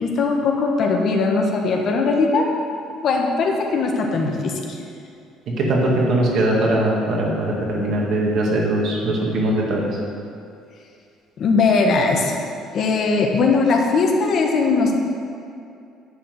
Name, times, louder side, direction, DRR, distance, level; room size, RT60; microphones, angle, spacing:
voice 1, 0.0-2.5 3.0-4.8 11.4-12.4 12.7-15.0, left 4 dB, 50° left, 1 dB, 1.3 m, -19 dB
voice 2, 5.6-9.9, right 1 dB, 60° right, -2 dB, 2.1 m, -20 dB
10.0 x 4.6 x 7.8 m, 2.5 s
cardioid pair, 115°, 0 cm